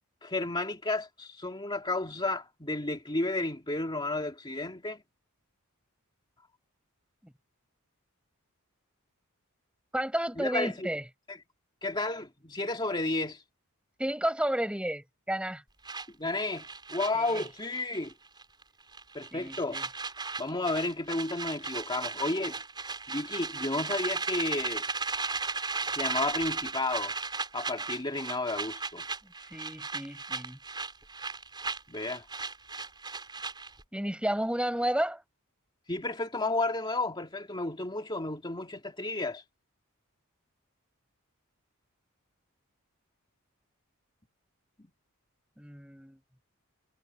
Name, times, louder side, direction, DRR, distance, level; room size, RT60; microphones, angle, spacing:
voice 1, 0.2-5.0 10.4-10.9 11.3-11.4 11.8-13.4 16.2-18.1 19.1-19.8 20.4-22.6 23.1-24.8 25.9-27.1 27.5-29.0 31.9-32.3 35.9-39.4, left 2 dB, 20° left, 2.7 m, -32 dB
voice 2, 9.9-11.0 14.0-15.6 17.1-17.4 19.3-19.8 29.5-30.6 33.9-35.2 45.6-46.2, right 1 dB, 5° right, 5.4 m, -32 dB
sound 1, 15.9-18.1 18.4-18.6 18.9-33.8, right 4 dB, 20° right, 5.4 m, -36 dB
head